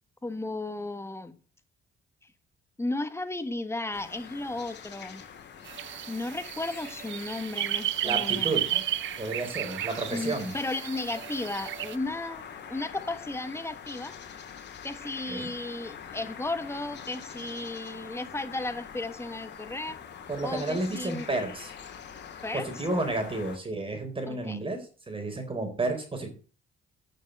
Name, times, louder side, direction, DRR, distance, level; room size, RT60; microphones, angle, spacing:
voice 1, 0.2-1.4 2.8-5.2 6.1-8.8 10.1-14.1 14.8-20.0 20.4-21.3 22.4-22.7 23.3-23.5 24.3-24.6, left 2 dB, 15° left, 1.4 m, -34 dB
sound 1, 3.9-23.6, left 7 dB, 60° left, 2.0 m, -45 dB
sound 2, 5.7-12.0, right 13 dB, 70° right, 0.7 m, -33 dB
voice 2, 8.0-8.6 9.2-10.5 15.3-15.5 20.3-21.7 22.5-26.3, right 2 dB, 25° right, 3.9 m, -31 dB
9.1 x 6.6 x 7.7 m
cardioid pair, 90°, 20 cm